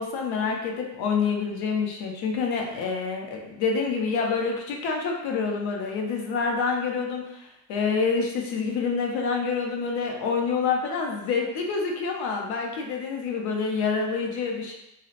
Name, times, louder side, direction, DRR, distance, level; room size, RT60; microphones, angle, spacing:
voice 1, 0.0-14.7, left 5 dB, 60° left, 1 dB, 0.6 m, -27 dB
2.7 x 2.0 x 2.4 m, 0.86 s
cardioid pair, 170°, 46 cm